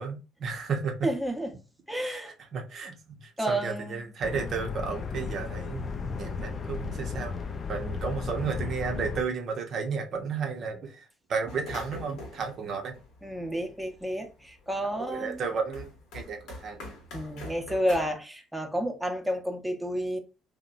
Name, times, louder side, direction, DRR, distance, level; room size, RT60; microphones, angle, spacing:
voice 1, 0.0-1.0 2.0-2.2 2.5-5.9 6.2-7.4 7.7-11.0 11.3-12.9 14.9-16.8, right 5 dB, 55° right, 0.6 m, -33 dB
voice 2, 1.0-1.5 1.9-2.3 3.4-4.1 13.2-15.4 17.1-20.2, equal, 5° right, 0.7 m, -30 dB
sound 1, 4.2-9.2, left 5 dB, 40° left, 0.4 m, -34 dB
sound 2, 11.5-14.1 14.5-18.1, left 2 dB, 70° left, 1.0 m, -44 dB
2.8 x 2.1 x 2.5 m
hypercardioid pair, 60°, 0 cm